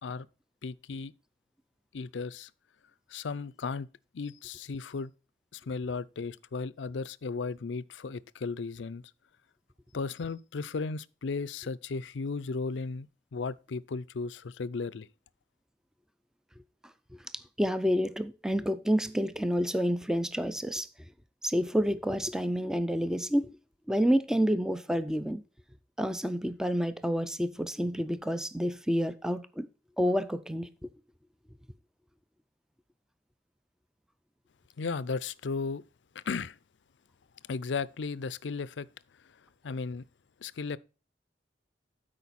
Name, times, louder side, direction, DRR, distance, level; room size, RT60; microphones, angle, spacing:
voice 1, 0.6-1.1 1.9-2.5 3.1-3.9 4.1-5.1 5.5-9.0 9.9-15.1 34.8-35.8 36.1-36.6 37.5-38.9 39.2-39.4 39.6-40.0 40.4-40.8, left 4 dB, 85° left, 0.5 m, -35 dB
voice 2, 17.1-20.9 21.4-23.6 23.9-25.4 26.0-29.7 30.0-30.9, equal, 5° right, 0.4 m, -29 dB
12.5 x 5.0 x 4.1 m
head